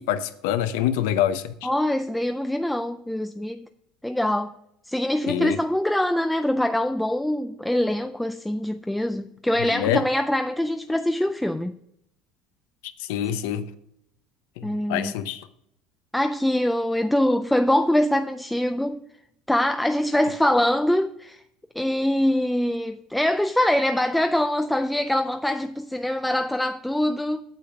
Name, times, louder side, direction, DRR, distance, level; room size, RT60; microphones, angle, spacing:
voice 1, 0.0-1.7 5.3-5.6 9.6-10.0 13.0-13.7 14.6-15.5, left 10 dB, 85° left, 0.7 m, -26 dB
voice 2, 1.6-3.7 4.0-4.5 4.8-11.7 14.6-15.1 16.1-19.0 19.5-21.4 21.8-27.4, left 1 dB, 5° left, 0.3 m, -24 dB
8.3 x 6.9 x 5.9 m
cardioid pair, 140°, 0 cm